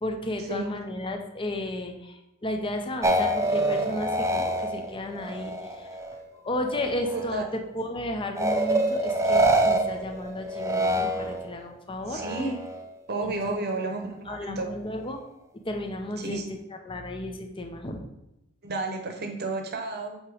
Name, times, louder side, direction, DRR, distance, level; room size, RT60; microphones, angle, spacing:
voice 1, 0.0-5.9 6.4-12.2 13.2-13.5 14.3-15.2 15.6-16.4 16.8-18.0, left 1 dB, 25° left, 4 dB, 0.7 m, -33 dB
sound 1, 3.0-6.2 6.6-7.4 8.4-11.6 12.1-12.9, right 1 dB, 15° right, 0.5 m, -26 dB
voice 2, 7.1-7.5 12.1-12.6 13.1-14.7 16.2-16.4 18.6-20.2, right 2 dB, 45° right, 4 dB, 0.9 m, -31 dB
8.0 x 3.0 x 4.8 m, 0.88 s
head